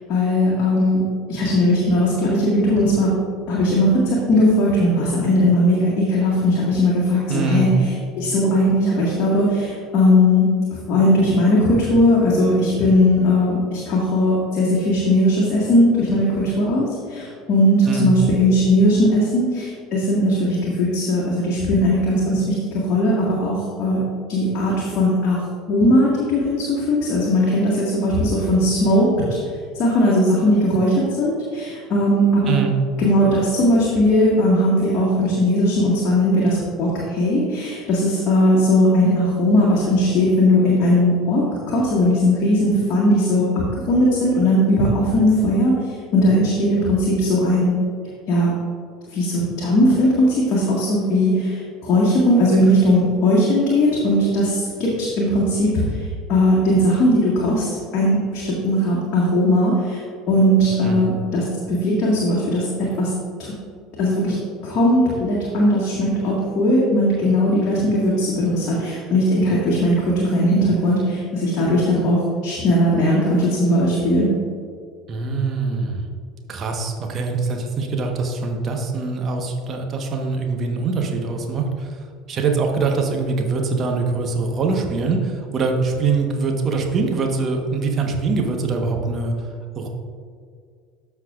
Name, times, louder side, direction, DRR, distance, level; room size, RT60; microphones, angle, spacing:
voice 1, 0.1-1.0 1.3-3.1 3.5-10.5 10.9-24.0 24.3-25.4 25.7-29.1 29.8-32.6 33.0-41.4 41.7-43.4 43.9-45.7 46.1-47.7 48.3-48.5 49.1-60.0 60.3-62.7 63.0-63.1 64.0-64.4 64.6-74.3, left 1 dB, 45° left, -6 dB, 1.9 m, -18 dB
voice 2, 7.3-7.7 17.9-18.1 32.5-32.7 60.8-61.1 75.1-76.0 76.5-82.0 82.3-89.5 89.7-89.9, right 4 dB, 40° right, 2 dB, 1.3 m, -23 dB
13.0 x 5.8 x 2.5 m, 2.1 s
figure-of-eight pair, 70°, 0 cm